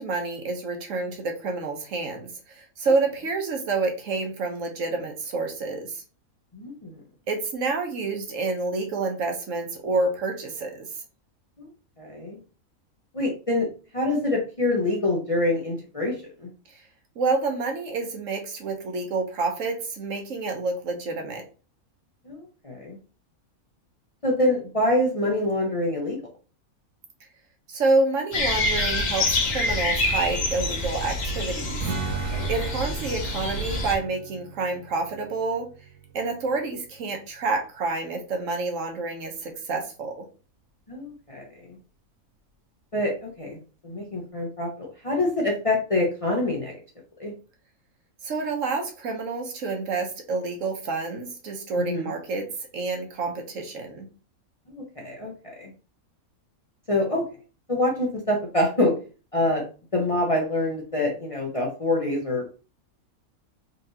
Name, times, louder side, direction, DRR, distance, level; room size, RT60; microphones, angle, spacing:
voice 1, 0.0-6.0 7.3-10.9 16.7-16.8 17.2-21.5 27.7-31.8 32.5-35.7 36.1-40.3 48.2-54.1, right 3 dB, 60° right, 3 dB, 1.1 m, -28 dB
voice 2, 6.5-7.0 11.6-11.7 12.0-12.4 13.1-13.7 13.9-16.2 16.4-16.5 22.3-23.0 24.2-26.2 32.3-32.5 40.9-41.8 42.9-46.7 47.2-47.3 51.8-52.1 54.8-55.7 56.9-57.3 57.7-59.0 59.3-59.7 59.9-62.6, left 1 dB, 30° left, -2 dB, 0.6 m, -26 dB
sound 1, 28.3-34.0, left 2 dB, 65° left, 1.4 m, -26 dB
Strum, 31.8-37.4, right 6 dB, 85° right, 1.2 m, -38 dB
3.9 x 3.2 x 2.7 m, 0.35 s
omnidirectional pair, 1.5 m